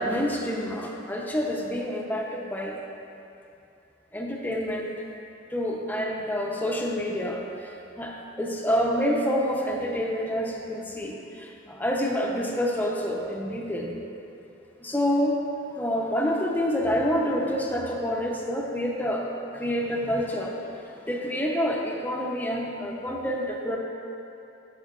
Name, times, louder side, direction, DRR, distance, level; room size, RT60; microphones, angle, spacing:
voice 1, 0.0-2.8 4.1-4.9 5.5-13.9 14.8-15.4 15.8-19.3 19.5-20.6 21.1-23.8, equal, 10° left, -1 dB, 0.7 m, -27 dB
12.5 x 7.3 x 2.5 m, 2.7 s
head